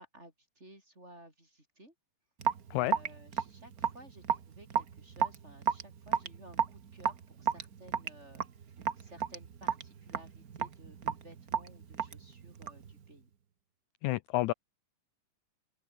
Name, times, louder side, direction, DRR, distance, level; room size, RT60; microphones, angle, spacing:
voice 1, 0.0-1.9 2.8-13.3, right 1 dB, 20° right, 8.1 m, -55 dB
Raindrop / Drip, 2.4-12.9, right 7 dB, 65° right, 0.8 m, -34 dB
voice 2, 14.0-14.5, left 17 dB, 80° left, 1.8 m, -30 dB
open air
omnidirectional pair, 3.8 m